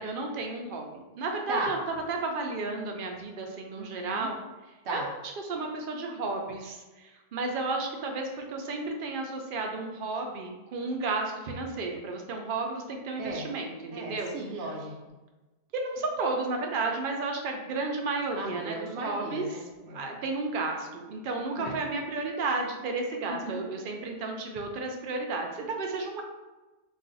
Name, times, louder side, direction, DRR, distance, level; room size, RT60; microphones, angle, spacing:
voice 1, 0.0-1.8 2.1-4.4 4.9-5.1 5.5-14.3 15.7-19.5 19.9-26.2, right 3 dB, 60° right, 2 dB, 0.6 m, -32 dB
voice 2, 3.8-4.3 4.8-5.1 13.2-13.5 13.9-15.2 18.4-20.1 21.6-21.8 23.2-23.6, right 2 dB, 80° right, -1 dB, 0.9 m, -36 dB
2.4 x 2.3 x 3.8 m, 1.1 s
omnidirectional pair, 1.1 m